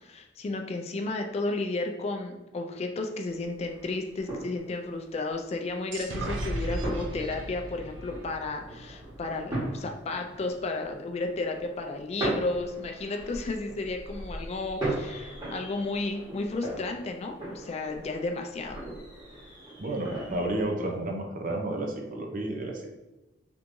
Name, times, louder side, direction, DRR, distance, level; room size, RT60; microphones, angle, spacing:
voice 1, 0.0-18.8, left 3 dB, 35° left, 4 dB, 0.3 m, -33 dB
sound 1, 3.3-20.6, right 1 dB, 25° right, 1.3 m, -39 dB
sound 2, 5.9-9.6, right 1 dB, 90° right, 0.5 m, -36 dB
voice 2, 19.8-22.9, right 1 dB, 45° right, 2 dB, 0.6 m, -31 dB
3.4 x 3.0 x 2.6 m, 1.0 s
head